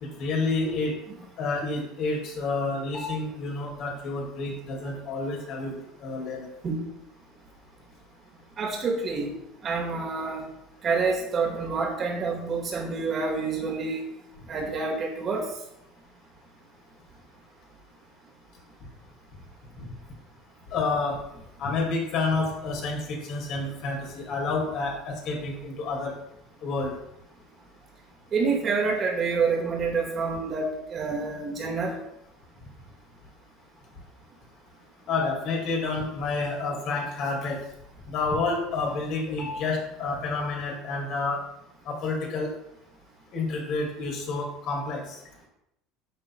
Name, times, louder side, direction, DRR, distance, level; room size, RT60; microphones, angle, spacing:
voice 1, 0.0-0.9 1.4-6.5 20.7-21.2 21.6-26.1 26.6-26.9 35.1-37.6 38.1-41.4 41.9-42.5 43.3-45.2, left 3 dB, 55° left, 0 dB, 2.1 m, -29 dB
voice 2, 8.6-9.3 9.6-10.5 10.8-14.0 14.5-15.5 28.3-31.9, right 4 dB, 40° right, 0 dB, 1.8 m, -27 dB
9.5 x 5.7 x 2.2 m, 0.80 s
hypercardioid pair, 65°, 0 cm